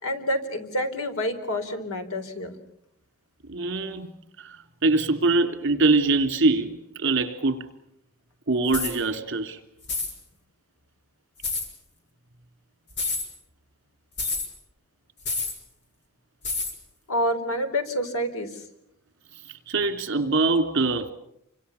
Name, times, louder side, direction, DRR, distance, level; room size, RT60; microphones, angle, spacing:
voice 1, 0.0-2.5 17.1-18.6, equal, 85° left, 4.0 m, -28 dB
voice 2, 3.5-4.1 4.4-7.7 8.5-9.6 19.5-21.1, right 3 dB, 60° right, 3.0 m, -23 dB
bag of coins, 8.7-9.0 9.8-10.1 11.4-11.7 12.9-13.3 14.2-14.5 15.2-15.6 16.4-16.8, left 3 dB, 55° left, 6.3 m, -28 dB
29.0 x 25.0 x 7.1 m
head